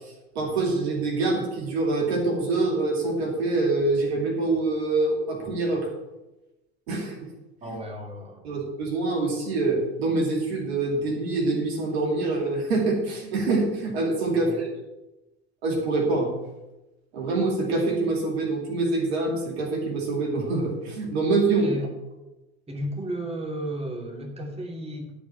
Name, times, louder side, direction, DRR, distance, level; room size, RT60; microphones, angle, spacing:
voice 1, 0.3-5.9 6.9-7.3 8.4-14.7 15.6-16.3 17.1-21.7, right 3 dB, 75° right, 0 dB, 2.5 m, -25 dB
voice 2, 7.6-8.4 14.3-14.6 21.6-21.9 22.7-25.1, equal, 20° right, 1 dB, 2.8 m, -33 dB
12.0 x 5.1 x 7.3 m, 1.0 s
hypercardioid pair, 70°, 32 cm